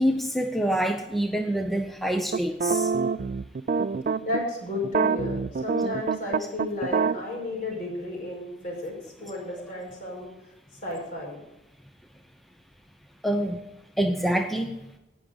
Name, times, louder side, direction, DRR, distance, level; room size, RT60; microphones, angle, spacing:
voice 1, 0.0-2.9 13.2-13.6 14.0-14.7, equal, ahead, 4 dB, 0.7 m, -26 dB
sound 1, 2.3-4.4 4.8-7.2, right 5 dB, 50° right, 0.4 m, -25 dB
voice 2, 4.2-10.3 10.8-11.4, left 2 dB, 50° left, -1 dB, 5.5 m, -33 dB
18.0 x 6.3 x 5.2 m, 0.95 s
head